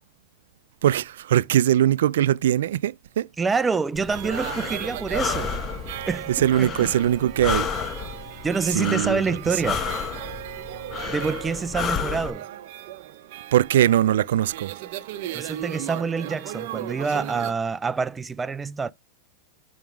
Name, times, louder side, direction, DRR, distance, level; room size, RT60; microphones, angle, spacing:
voice 1, 0.8-3.3 6.3-7.7 8.7-9.4 13.5-14.7, right 11 dB, 80° right, 0.3 m, -21 dB
voice 2, 3.4-5.6 6.1-6.3 6.6-6.7 8.4-9.8 11.1-12.5 15.3-18.9, right 5 dB, 15° right, 0.4 m, -26 dB
Breathing, 3.9-12.3, left 6 dB, 25° left, 0.9 m, -31 dB
sound 1, 4.1-17.5, right 14 dB, 60° right, 0.8 m, -37 dB
7.2 x 6.0 x 3.4 m
supercardioid pair, 140°, 0 cm